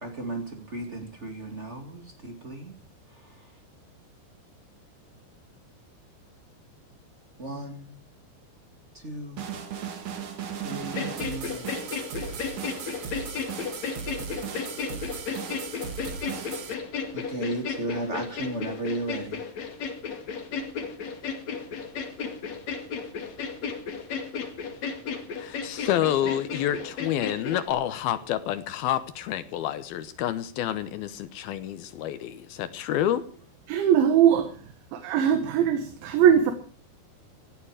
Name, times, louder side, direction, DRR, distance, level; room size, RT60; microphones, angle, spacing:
voice 1, 0.0-2.8 7.4-8.0 9.0-9.6 10.6-11.7 17.1-19.4, right 1 dB, 30° right, 4 dB, 1.2 m, -34 dB
sound 1, 9.4-16.7, right 7 dB, 50° right, 2.8 m, -36 dB
voice loopner, 10.9-27.7, left 5 dB, 45° left, 3.0 m, -34 dB
voice 2, 25.4-33.3, left 11 dB, 75° left, 12 dB, 2.3 m, -28 dB
voice 3, 33.7-34.5 34.9-36.5, right 9 dB, 75° right, 8 dB, 3.9 m, -20 dB
18.5 x 14.5 x 4.9 m, 0.40 s
omnidirectional pair, 5.4 m